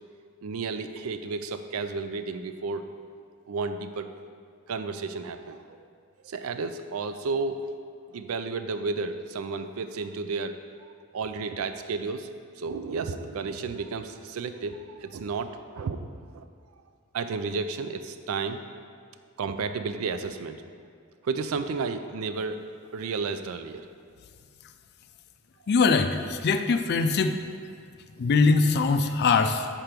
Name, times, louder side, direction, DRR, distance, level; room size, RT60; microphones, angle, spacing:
voice 1, 0.4-2.9 3.5-4.1 4.7-5.8 6.2-7.7 8.1-12.3 12.6-16.5 17.1-18.6 19.4-20.7 21.2-22.6 22.9-23.9, right 4 dB, 85° right, 9 dB, 0.4 m, -32 dB
voice 2, 25.7-27.4 28.2-29.7, left 4 dB, 50° left, 8 dB, 0.4 m, -22 dB
5.1 x 4.4 x 5.9 m, 2.1 s
head